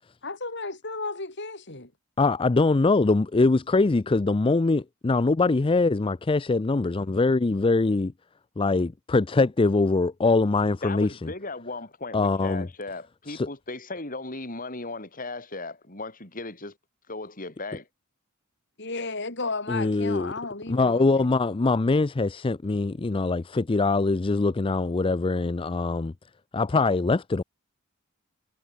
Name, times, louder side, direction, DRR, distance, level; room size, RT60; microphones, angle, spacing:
voice 1, 0.2-1.9 18.8-21.3, left 3 dB, 55° left, 6.1 m, -33 dB
voice 2, 2.2-8.1 8.6-11.3 12.1-12.7 13.3-13.5 19.7-20.3 20.7-26.1 26.5-27.4, left 3 dB, 25° left, 0.4 m, -23 dB
voice 3, 10.8-16.8 17.1-17.9, left 3 dB, 40° left, 6.0 m, -36 dB
head